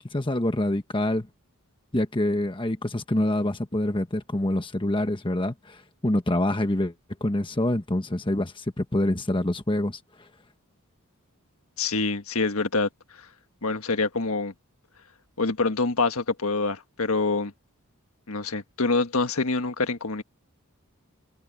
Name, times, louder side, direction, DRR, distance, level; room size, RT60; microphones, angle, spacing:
voice 1, 0.1-1.3 1.9-6.9 7.2-10.0, left 1 dB, 20° left, 1.2 m, -26 dB
voice 2, 11.8-13.2 13.6-14.5 15.4-17.5 18.3-20.2, left 3 dB, 70° left, 1.6 m, -26 dB
head